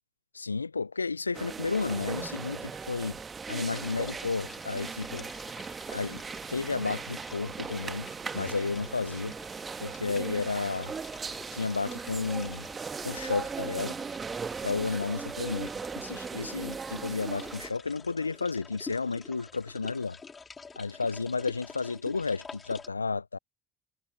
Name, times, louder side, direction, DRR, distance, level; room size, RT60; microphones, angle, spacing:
voice 1, 0.3-3.2 3.5-5.3 5.9-6.2 6.5-8.1 8.3-9.3 9.8-10.9 11.5-12.7 13.0-14.0 14.6-15.7 16.0-20.2 20.8-23.4, left 4 dB, 90° left, 0.3 m, -32 dB
sound 1, 1.3-17.7, right 5 dB, 30° right, 1.4 m, -38 dB
sound 2, 3.4-22.9, left 5 dB, 30° left, 2.6 m, -49 dB
Bowed string instrument, 5.9-10.6, right 19 dB, 60° right, 7.3 m, -59 dB
figure-of-eight pair, 55°, 0 cm